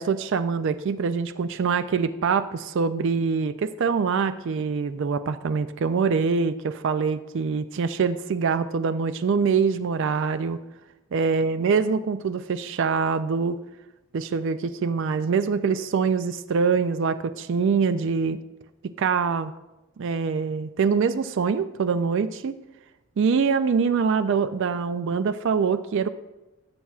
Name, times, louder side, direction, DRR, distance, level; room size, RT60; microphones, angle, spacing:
voice 1, 0.0-10.6 11.1-13.6 14.1-18.4 19.0-19.5 20.0-22.5 23.2-26.1, right 5 dB, 55° right, 11 dB, 0.3 m, -24 dB
16.5 x 7.3 x 2.4 m, 1.0 s
head